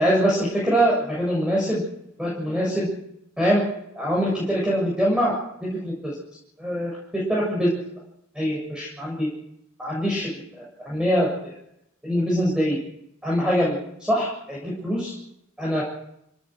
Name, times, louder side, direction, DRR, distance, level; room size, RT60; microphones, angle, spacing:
voice 1, 0.0-1.8 2.2-2.9 3.4-3.6 3.9-5.4 5.6-6.1 6.6-7.7 8.4-9.3 9.8-11.5 12.0-12.8 13.2-15.1 15.6-15.8, equal, 5° right, -4 dB, 7.3 m, -23 dB
27.0 x 19.0 x 6.4 m, 0.80 s
head